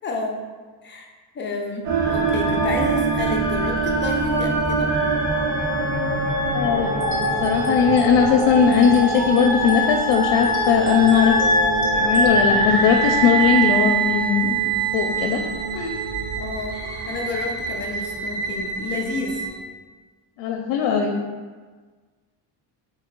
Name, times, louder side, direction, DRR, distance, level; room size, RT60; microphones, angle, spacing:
voice 1, 0.0-0.4 0.8-1.1 1.3-4.9 16.4-16.8 17.1-19.5 21.0-21.1, left 3 dB, 25° left, 0 dB, 0.4 m, -29 dB
sound 1, 1.8-19.5, right 3 dB, 75° right, 1.0 m, -23 dB
voice 2, 6.5-6.9 7.4-11.4 11.9-14.5 14.9-15.4 15.7-16.0 20.4-21.1, left 7 dB, 80° left, 2 dB, 0.5 m, -19 dB
sound 2, 7.0-12.3, equal, 45° right, 0.8 m, -28 dB
3.7 x 2.8 x 4.4 m, 1.4 s
cardioid pair, 170°, 43 cm